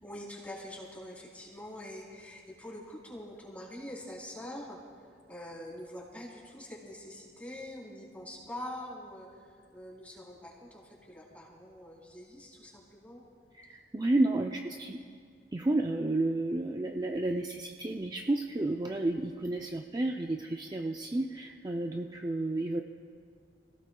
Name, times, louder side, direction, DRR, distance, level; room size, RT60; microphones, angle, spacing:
voice 1, 0.0-4.8 5.3-13.2, left 1 dB, 10° left, -5 dB, 3.6 m, -45 dB
voice 2, 13.5-15.0 15.5-22.8, right 2 dB, 25° right, 2 dB, 0.5 m, -31 dB
28.0 x 17.0 x 2.3 m, 2.1 s
head